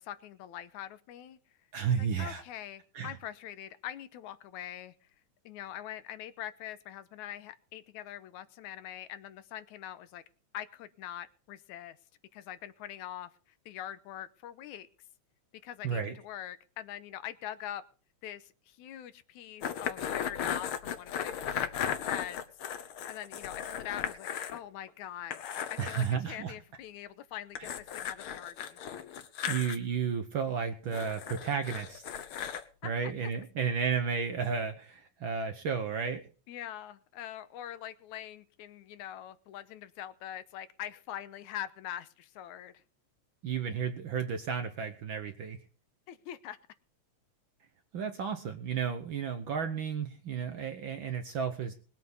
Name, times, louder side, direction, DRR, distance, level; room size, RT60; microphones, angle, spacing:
voice 1, 0.0-1.4 2.0-4.9 5.5-10.2 10.5-12.0 12.3-13.3 13.7-14.9 15.6-17.8 18.2-25.4 25.7-28.8 32.8-33.3 36.5-42.8 46.1-46.6, left 11 dB, 90° left, 13 dB, 2.3 m, -43 dB
voice 2, 1.7-2.4 2.9-3.2 15.8-16.1 25.8-26.5 29.5-32.0 32.8-36.2 43.4-45.6 47.9-51.7, right 6 dB, 60° right, 7 dB, 1.4 m, -32 dB
sound 1, 19.6-24.6 24.9-25.0 25.3-26.1 27.6-29.8 30.9-32.6, left 9 dB, 60° left, 1.5 m, -36 dB
20.5 x 8.3 x 5.4 m, 0.40 s
omnidirectional pair, 3.3 m